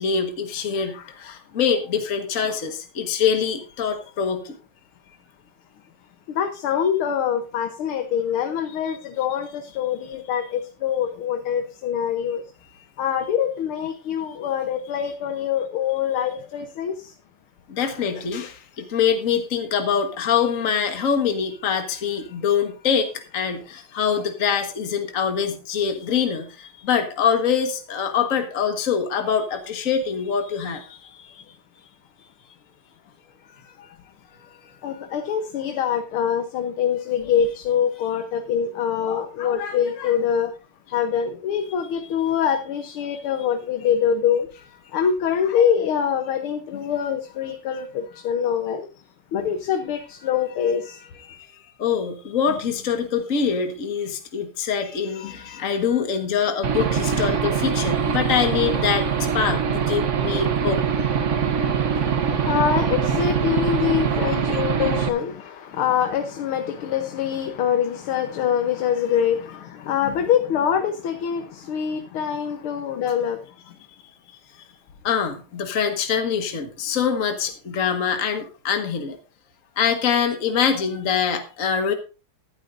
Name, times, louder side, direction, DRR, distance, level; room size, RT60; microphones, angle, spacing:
voice 1, 0.0-4.6 17.7-31.4 43.1-43.2 49.3-49.5 51.8-59.6 59.9-60.8 62.4-62.5 64.3-64.9 70.0-70.1 75.0-79.2 79.8-81.9, left 7 dB, 40° left, 1.7 m, -24 dB
voice 2, 6.3-12.4 13.0-17.1 34.8-40.5 40.9-44.5 44.9-48.9 49.3-51.0 60.3-60.5 61.4-73.4, left 8 dB, 80° left, 1.9 m, -24 dB
Aircraft / Engine, 56.6-65.1, right 7 dB, 50° right, 0.9 m, -23 dB
13.5 x 12.5 x 2.6 m
omnidirectional pair, 2.3 m